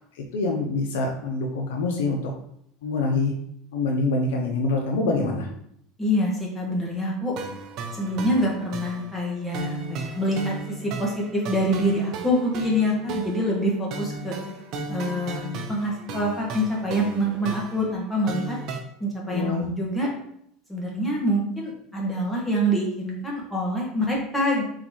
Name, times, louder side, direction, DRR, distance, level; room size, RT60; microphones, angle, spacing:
voice 1, 0.3-2.3 2.8-3.3 3.7-5.5 19.3-19.7, left 3 dB, 85° left, 1 dB, 0.7 m, -25 dB
voice 2, 6.0-7.3 7.9-14.3 14.9-18.6 19.0-20.1 20.7-24.6, equal, 5° left, -3 dB, 1.5 m, -26 dB
sound 1, 7.4-18.8, right 3 dB, 55° right, 0.7 m, -36 dB
4.1 x 3.9 x 3.1 m, 0.71 s
supercardioid pair, 125°, 0 cm